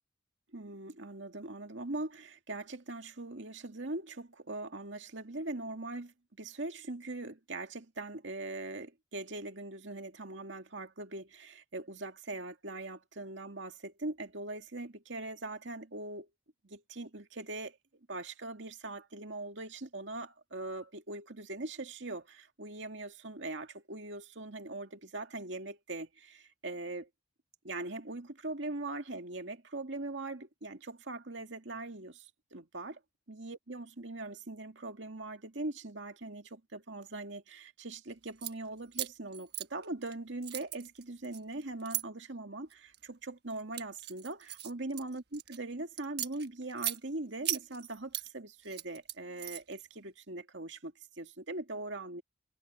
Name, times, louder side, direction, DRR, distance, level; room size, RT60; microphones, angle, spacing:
voice 1, 0.5-16.3 16.6-17.8 18.1-27.1 27.6-33.0 33.3-52.2, right 2 dB, 70° right, 2.1 m, -41 dB
sound 1, 38.2-38.5 38.9-40.1 40.4-42.0 42.7-43.0 43.5-45.6 46.0-47.0 47.4-48.3 48.6-49.8, right 14 dB, 55° right, 1.4 m, -38 dB
head